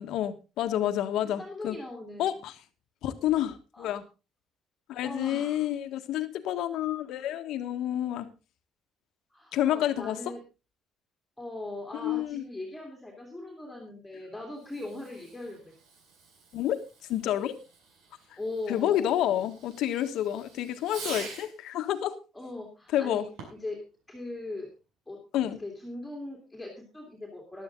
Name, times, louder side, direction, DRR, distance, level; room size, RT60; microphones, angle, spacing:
voice 1, 0.0-1.8 2.2-2.5 3.0-4.0 4.9-8.3 9.5-10.2 12.0-12.4 16.5-16.8 17.1-17.5 18.7-22.2 22.9-23.2 25.3-25.6, left 12 dB, 60° left, 1.6 m, -29 dB
voice 2, 1.2-2.3 3.7-4.0 5.0-5.7 9.3-10.4 11.4-15.7 18.1-19.4 22.3-24.7 25.1-27.6, left 2 dB, 5° left, 2.6 m, -40 dB
Fireworks, 14.5-21.6 23.3-23.8, right 4 dB, 75° right, 6.8 m, -47 dB
15.5 x 11.5 x 3.9 m
cardioid pair, 170°, 0 cm